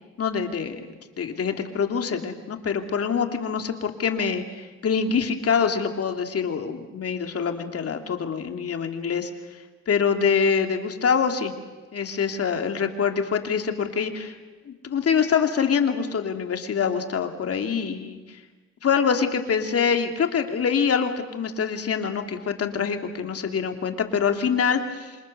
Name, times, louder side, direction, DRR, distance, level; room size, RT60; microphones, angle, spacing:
voice 1, 0.2-0.8 1.2-9.3 9.9-11.5 11.9-14.4 14.7-18.4 18.8-25.2, left 6 dB, 50° left, 6 dB, 2.7 m, -25 dB
27.5 x 26.5 x 6.7 m, 1.3 s
cardioid pair, 90°, 30 cm